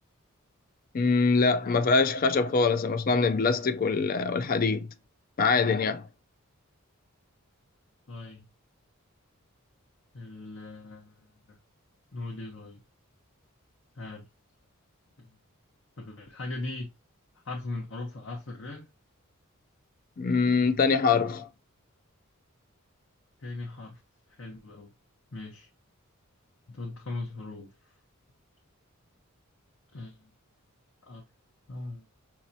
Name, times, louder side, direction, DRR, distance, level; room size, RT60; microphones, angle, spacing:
voice 1, 0.9-4.9 5.4-6.0 20.2-21.5, left 4 dB, 40° left, 0.4 m, -24 dB
voice 2, 8.1-8.5 10.1-11.6 12.1-12.8 14.0-14.3 15.2-15.3 16.0-16.9 17.4-18.9 23.4-24.0 24.4-24.9 25.3-25.7 26.7-27.9 29.9-30.3 31.0-31.2 31.7-32.1, left 2 dB, 60° left, 0.9 m, -39 dB
5.9 x 2.8 x 2.7 m
head